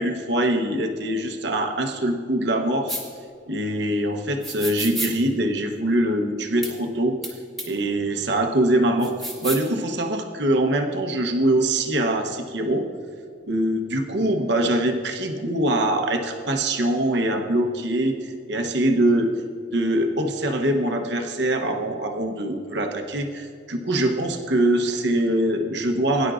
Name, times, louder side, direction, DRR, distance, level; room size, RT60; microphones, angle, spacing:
voice 1, 0.0-3.0 3.5-7.2 7.6-9.1 9.4-12.8 13.5-19.3 19.7-26.3, right 1 dB, 65° right, 4 dB, 0.9 m, -23 dB
sound 1, 2.9-3.0 4.4-5.1 6.6-6.7 7.2-7.3 7.6-7.7 9.0-9.7, right 1 dB, ahead, 1.6 m, -30 dB
18.0 x 10.5 x 2.5 m, 2.2 s
head